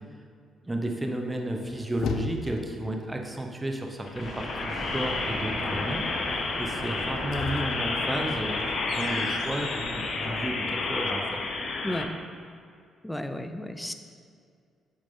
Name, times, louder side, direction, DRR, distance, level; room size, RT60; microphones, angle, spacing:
voice 1, 0.6-6.1 6.6-11.4, right 1 dB, 15° right, 3 dB, 0.9 m, -33 dB
sound 1, 1.4-2.9 6.9-10.2, left 6 dB, 80° left, 0.4 m, -38 dB
sound 2, 4.1-12.0, left 3 dB, 55° left, 0.9 m, -31 dB
Thunder, 4.1-9.5, right 1 dB, 55° right, 1.5 m, -41 dB
voice 2, 13.0-13.9, left 1 dB, 5° left, 7 dB, 0.5 m, -33 dB
8.1 x 6.6 x 3.8 m, 2.3 s
cardioid pair, 90°, 0 cm